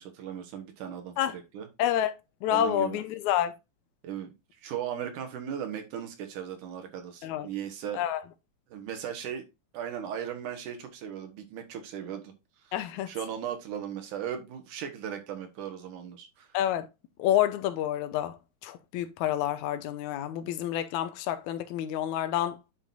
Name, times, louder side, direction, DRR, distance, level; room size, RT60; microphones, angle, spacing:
voice 1, 0.0-1.7 2.5-3.0 4.0-8.0 8.7-9.4 9.7-12.3 12.7-12.8 13.1-16.5, right 9 dB, 85° right, 2.9 m, -37 dB
voice 2, 1.8-2.1 2.4-3.5 7.2-7.5 7.9-8.2 12.7-13.1 16.5-16.9 17.2-18.4 18.6-22.6, left 11 dB, 75° left, 2.1 m, -28 dB
9.9 x 5.9 x 2.6 m
omnidirectional pair, 3.5 m